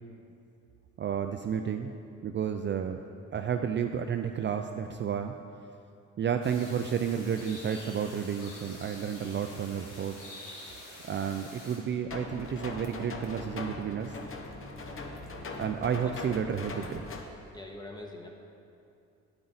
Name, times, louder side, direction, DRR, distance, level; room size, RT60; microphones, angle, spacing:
voice 1, 1.0-1.9 2.2-3.0 3.3-5.3 6.2-10.3 11.0-14.2 15.6-17.0, right 8 dB, 40° right, 6 dB, 0.4 m, -31 dB
sound 1, 6.4-11.8, left 1 dB, 90° left, 2.1 m, -47 dB
sound 2, 12.1-17.2, left 3 dB, 45° left, 1.0 m, -40 dB
voice 2, 17.5-18.3, left 2 dB, 15° left, 0 dB, 1.2 m, -43 dB
9.8 x 7.7 x 4.1 m, 2.6 s
cardioid pair, 90°, 30 cm